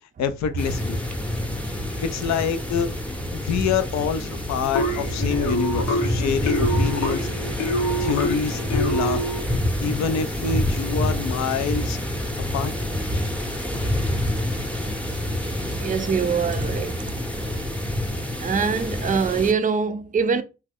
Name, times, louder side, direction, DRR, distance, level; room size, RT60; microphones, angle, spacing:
voice 1, 0.2-1.0 2.0-3.0 3.3-7.3 8.0-9.2 9.8-12.0 12.5-12.7, left 7 dB, 60° left, 0.5 m, -26 dB
sound 1, 0.6-19.5, left 1 dB, 5° left, 0.8 m, -27 dB
sound 2, 4.7-9.5, right 1 dB, 75° left, 0.9 m, -26 dB
voice 2, 15.8-17.0 18.4-20.4, right 5 dB, 25° right, 0.4 m, -23 dB
2.8 x 2.2 x 3.5 m
hypercardioid pair, 40°, 31 cm